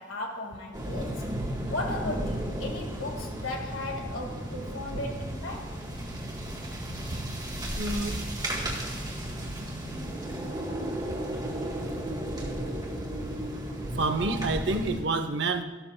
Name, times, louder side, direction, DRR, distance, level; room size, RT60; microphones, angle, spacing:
voice 1, 0.0-1.4 1.7-5.8, left 2 dB, 80° left, 2 dB, 1.9 m, -36 dB
sound 1, 0.7-15.0, right 1 dB, 20° right, 1.7 m, -34 dB
voice 2, 7.8-8.1 14.0-15.6, right 3 dB, 60° right, 8 dB, 0.8 m, -28 dB
14.5 x 12.0 x 2.2 m, 1.2 s
head